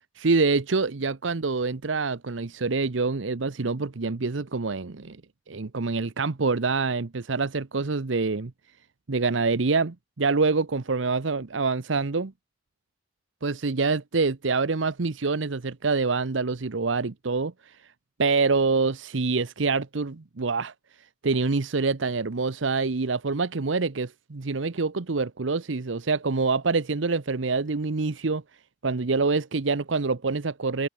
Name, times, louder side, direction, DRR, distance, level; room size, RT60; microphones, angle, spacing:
voice 1, 0.2-5.2 5.5-8.5 9.1-12.3 13.4-17.5 18.2-20.7 21.2-28.4 28.8-30.9, right 4 dB, 80° right, 0.9 m, -26 dB
open air
head